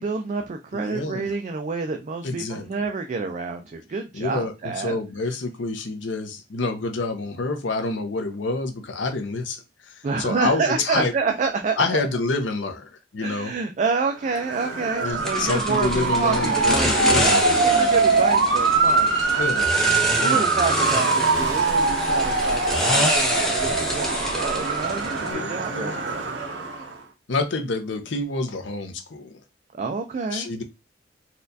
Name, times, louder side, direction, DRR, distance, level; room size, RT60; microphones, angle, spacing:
voice 1, 0.0-5.0 10.0-12.0 13.2-19.4 20.2-26.2 29.7-30.5, right 4 dB, 40° right, 0.4 m, -28 dB
voice 2, 0.7-1.3 2.2-2.7 4.1-11.1 11.8-13.5 15.0-17.7 19.4-19.7 20.2-20.4 25.3-26.0 27.3-29.4 30.3-30.6, left 3 dB, 70° left, 0.6 m, -28 dB
Motor vehicle (road) / Siren, 14.2-26.9, right 4 dB, 70° right, 0.8 m, -23 dB
sound 1, 15.2-25.3, left 1 dB, ahead, 0.7 m, -27 dB
4.2 x 2.4 x 2.6 m
head